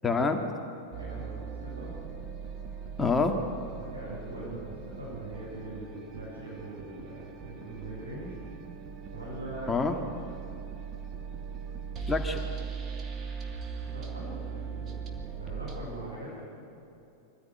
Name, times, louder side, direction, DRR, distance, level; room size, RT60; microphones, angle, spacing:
voice 1, 0.0-0.4 3.0-3.3 9.7-10.0 12.1-12.4, left 4 dB, 15° left, 5 dB, 2.0 m, -26 dB
sound 1, 0.9-15.8, right 6 dB, 30° right, 2.7 m, -40 dB
voice 2, 1.0-1.9 3.7-8.4 9.1-9.7 13.8-16.4, right 2 dB, 80° right, -5 dB, 7.7 m, -42 dB
24.5 x 15.5 x 9.5 m, 2.8 s
figure-of-eight pair, 90°, 0 cm